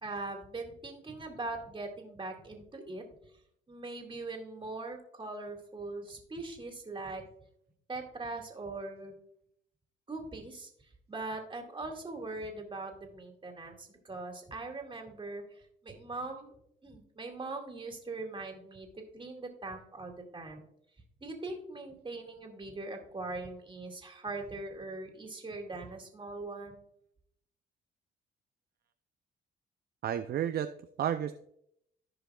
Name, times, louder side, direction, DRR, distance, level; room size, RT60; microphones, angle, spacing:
voice 1, 0.0-3.0 3.7-7.2 7.9-9.2 10.1-10.7 11.1-16.5 16.8-18.9 19.1-20.6 21.2-26.8, right 2 dB, 25° right, 2 dB, 2.1 m, -41 dB
voice 2, 30.0-31.5, right 10 dB, 55° right, 8 dB, 0.4 m, -33 dB
15.0 x 5.1 x 2.3 m, 0.72 s
cardioid pair, 90°, 20 cm